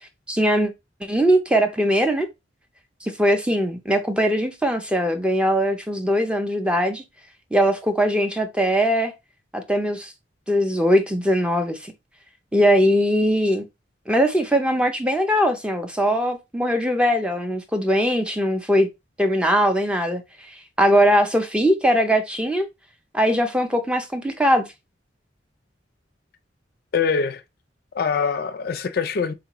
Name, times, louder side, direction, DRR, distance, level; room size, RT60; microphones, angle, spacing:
voice 1, 0.3-0.7 1.0-2.3 3.0-7.0 7.5-9.1 9.5-10.1 10.5-11.9 12.5-13.7 14.1-18.9 19.2-22.7 23.1-24.7, equal, 5° right, 0.4 m, -20 dB
voice 2, 26.9-27.4 27.9-29.3, left 5 dB, 55° left, 0.4 m, -23 dB
3.7 x 2.4 x 2.9 m
head